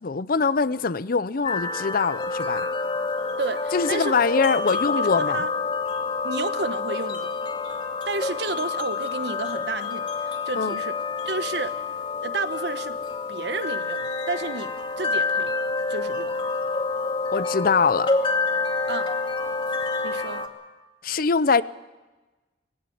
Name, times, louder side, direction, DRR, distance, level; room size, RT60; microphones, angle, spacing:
voice 1, 0.0-2.7 3.7-5.4 10.6-10.8 17.3-18.1 21.0-21.6, left 5 dB, 50° left, 0.6 m, -23 dB
sound 1, 1.4-20.5, left 4 dB, 30° left, 2.2 m, -28 dB
voice 2, 3.4-4.1 5.0-5.5 6.2-7.3 8.1-11.0 11.2-11.8 12.2-13.0 13.3-15.5 15.9-16.3 18.9-19.1 20.0-20.4, right 3 dB, 65° right, 1.2 m, -31 dB
21.5 x 16.5 x 9.3 m
head